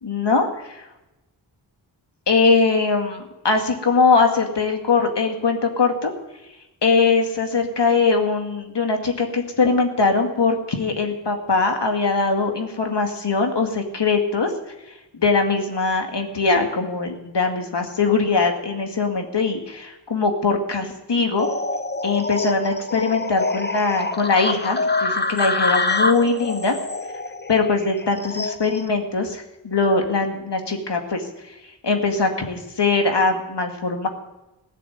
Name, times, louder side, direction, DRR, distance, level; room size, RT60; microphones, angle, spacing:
voice 1, 0.0-0.8 2.3-6.1 6.8-14.5 15.1-21.5 22.0-26.8 27.5-31.2 31.8-34.1, left 4 dB, 60° left, 4 dB, 2.2 m, -21 dB
sound 1, 21.4-28.9, left 3 dB, 20° left, 1.0 m, -26 dB
16.0 x 6.7 x 9.5 m, 0.99 s
cardioid pair, 50°, 46 cm